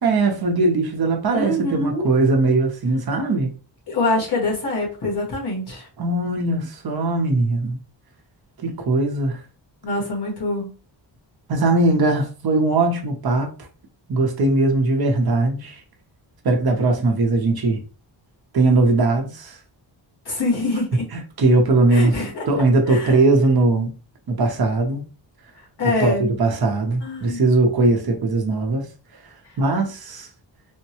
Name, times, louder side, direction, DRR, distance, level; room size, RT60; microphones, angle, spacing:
voice 1, 0.0-3.5 6.0-7.8 8.6-9.4 11.5-13.5 14.1-15.8 16.4-17.8 18.5-19.6 21.4-23.9 24.3-25.0 25.8-28.8 29.6-30.3, right 2 dB, 55° right, 0.8 m, -20 dB
voice 2, 1.3-2.1 3.9-5.9 9.8-10.7 20.2-21.1 21.9-22.4 22.9-23.2 25.8-26.2 27.0-27.4, left 2 dB, 60° left, 1.7 m, -24 dB
3.5 x 2.2 x 2.8 m
wide cardioid pair, 175°, 45 cm